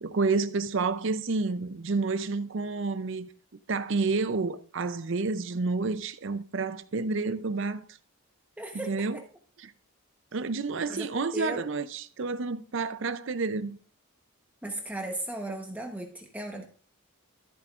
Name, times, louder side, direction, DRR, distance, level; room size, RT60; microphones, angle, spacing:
voice 1, 0.0-3.3 3.7-7.8 8.7-9.2 9.6-9.7 10.3-13.8, right 4 dB, 55° right, 0.5 m, -29 dB
voice 2, 8.6-9.2 10.9-11.6 14.6-16.6, right 1 dB, 5° right, 1.0 m, -36 dB
14.0 x 8.6 x 2.5 m
head